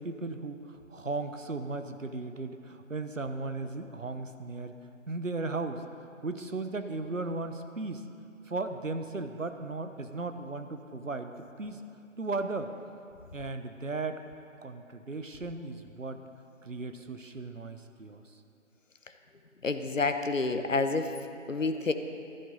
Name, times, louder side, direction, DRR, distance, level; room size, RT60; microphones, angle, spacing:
voice 1, 0.0-4.8 5.1-5.8 6.2-8.0 8.5-11.8 12.2-12.7 13.3-14.2 14.6-16.2 16.6-18.4 21.5-21.6, right 3 dB, 70° right, 8 dB, 1.0 m, -36 dB
voice 2, 19.6-21.1 21.5-21.9, left 3 dB, 70° left, 8 dB, 0.9 m, -28 dB
15.5 x 11.5 x 4.1 m, 2.6 s
figure-of-eight pair, 165°, 40 cm